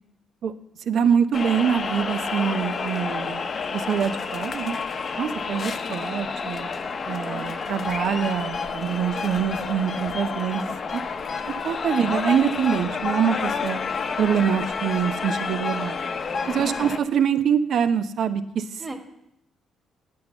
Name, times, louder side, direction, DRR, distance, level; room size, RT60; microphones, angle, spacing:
voice 1, 0.9-4.8 5.2-6.7 7.1-11.0 11.5-13.8 14.2-16.0 16.5-18.8, right 8 dB, 65° right, 10 dB, 0.7 m, -25 dB
sound 1, 1.3-17.0, left 5 dB, 45° left, 0.7 m, -29 dB
voice 2, 7.3-7.5 16.6-16.9 18.8-19.0, right 2 dB, 15° right, 2 dB, 1.8 m, -36 dB
9.4 x 5.4 x 8.0 m, 0.81 s
cardioid pair, 90°, 0 cm